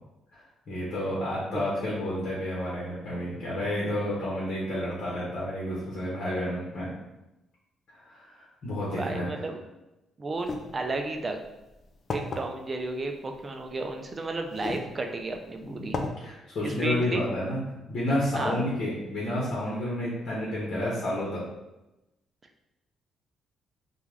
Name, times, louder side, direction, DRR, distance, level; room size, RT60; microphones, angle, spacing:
voice 1, 0.3-6.9 7.9-9.3 15.8-17.6 17.9-21.4, left 1 dB, 60° left, -6 dB, 0.8 m, -30 dB
voice 2, 8.9-9.6 10.2-11.4 12.1-16.0 16.6-17.2 18.3-18.6, right 2 dB, 30° right, 4 dB, 0.4 m, -33 dB
sound 1, 10.4-10.6 11.4-11.5 12.1-12.4 13.7-13.8 14.5-14.9 15.3-15.4 15.9-16.1, left 3 dB, 45° left, 0.3 m, -32 dB
2.2 x 2.2 x 3.3 m, 0.97 s
cardioid pair, 90°, 0 cm